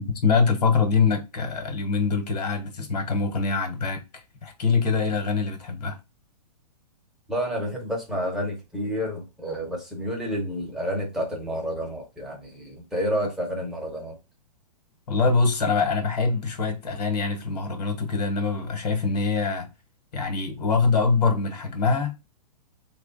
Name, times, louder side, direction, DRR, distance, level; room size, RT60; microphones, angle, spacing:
voice 1, 0.0-6.0 15.1-19.7 20.1-22.1, left 4 dB, 75° left, 1.2 m, -24 dB
voice 2, 7.3-14.2, equal, ahead, 0.7 m, -29 dB
3.2 x 2.4 x 3.8 m
hypercardioid pair, 160°, 21 cm